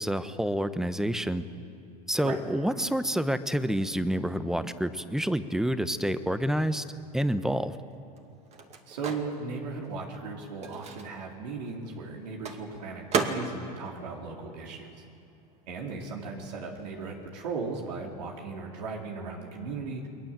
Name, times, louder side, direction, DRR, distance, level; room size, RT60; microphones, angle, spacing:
voice 1, 0.0-1.4 2.1-6.8 7.1-7.7, equal, ahead, 12 dB, 1.0 m, -28 dB
Microwave oven, 7.8-15.3 15.6-17.5, right 5 dB, 30° right, 2.4 m, -37 dB
voice 2, 8.9-14.9 15.7-20.0, right 4 dB, 85° right, 0 dB, 3.7 m, -37 dB
29.0 x 21.0 x 7.5 m, 2.5 s
supercardioid pair, 115°, 21 cm